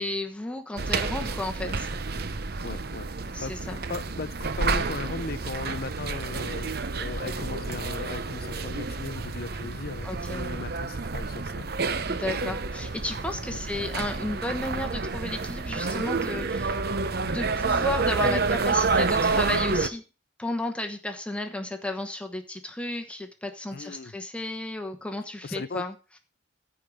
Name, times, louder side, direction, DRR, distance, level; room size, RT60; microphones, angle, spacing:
voice 1, 0.0-1.9 3.3-3.8 10.0-10.5 12.1-16.8 17.2-20.0 20.4-25.9, left 2 dB, 5° left, 1.1 m, -33 dB
sound 1, 0.8-19.9, right 4 dB, 50° right, 0.8 m, -29 dB
voice 2, 2.6-6.7 7.0-11.7 12.4-12.5 13.5-13.6 18.2-18.4 23.7-24.1 25.4-25.8, left 4 dB, 50° left, 0.5 m, -37 dB
14.5 x 4.9 x 6.3 m
head